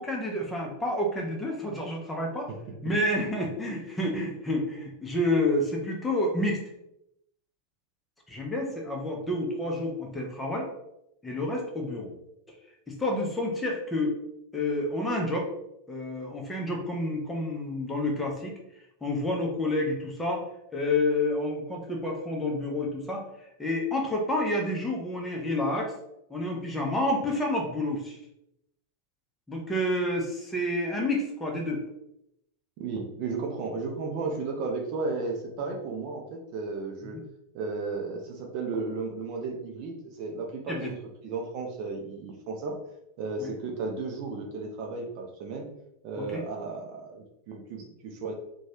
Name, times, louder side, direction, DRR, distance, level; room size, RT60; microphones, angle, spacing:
voice 1, 0.0-2.5 2.8-6.6 8.3-10.7 11.2-12.1 12.5-12.6 12.9-14.2 14.5-15.5 15.9-18.5 19.0-20.4 20.7-23.2 23.6-25.9 26.3-28.2 29.5-31.8 35.6-35.7 37.1-37.2 40.7-40.9 43.4-43.5 46.3-46.4, left 1 dB, 10° left, -1 dB, 0.7 m, -29 dB
voice 2, 32.8-37.2 37.5-41.0 41.2-42.8 43.2-45.7 46.0-48.3, right 4 dB, 40° right, 1 dB, 0.5 m, -34 dB
3.0 x 2.2 x 2.8 m, 0.81 s
figure-of-eight pair, 90°, 0 cm